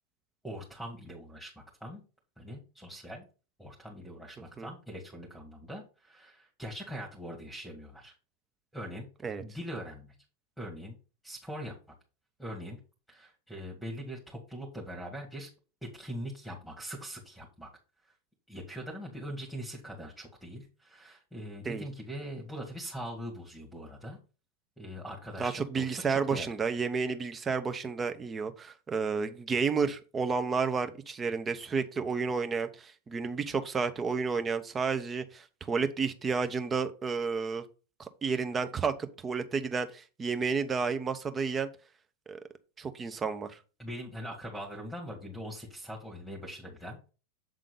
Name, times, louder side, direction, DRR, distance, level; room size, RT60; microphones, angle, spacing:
voice 1, 0.4-2.0 2.4-3.3 3.6-8.1 8.7-9.1 9.4-10.1 10.6-10.9 11.2-11.8 12.4-12.8 13.1-15.5 15.9-17.7 18.5-24.2 24.8-26.5 43.8-47.1, equal, 5° right, -1 dB, 2.0 m, -42 dB
voice 2, 25.4-37.6 38.0-41.7 42.3-42.4 42.8-43.6, right 5 dB, 20° right, 8 dB, 0.9 m, -31 dB
7.7 x 3.7 x 5.1 m, 0.34 s
figure-of-eight pair, 90°, 0 cm